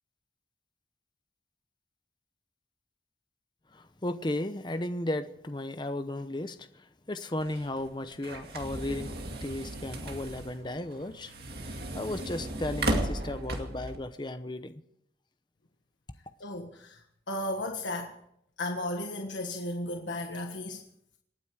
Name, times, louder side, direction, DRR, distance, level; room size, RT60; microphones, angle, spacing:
voice 1, 3.7-11.3 11.7-14.7, left 1 dB, 25° left, 10 dB, 0.8 m, -35 dB
sound 1, 7.4-14.0, right 1 dB, 55° right, 2.2 m, -35 dB
voice 2, 16.4-18.2 18.6-20.8, left 1 dB, 85° left, 3 dB, 1.5 m, -35 dB
27.0 x 9.2 x 4.8 m, 0.73 s
head